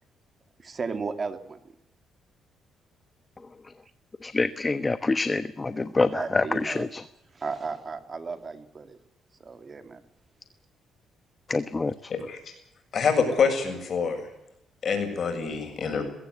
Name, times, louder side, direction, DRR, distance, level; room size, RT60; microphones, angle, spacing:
voice 1, 0.6-1.6 5.7-6.9 7.3-9.0 9.4-10.0, right 4 dB, 35° right, 9 dB, 2.6 m, -35 dB
voice 2, 4.2-7.0 11.5-11.9, left 3 dB, 25° left, 12 dB, 1.1 m, -26 dB
voice 3, 12.1-12.5 12.9-14.2 14.8-16.0, left 5 dB, 50° left, 6 dB, 7.3 m, -26 dB
21.5 x 16.0 x 9.8 m, 0.82 s
cardioid pair, 90°, 0 cm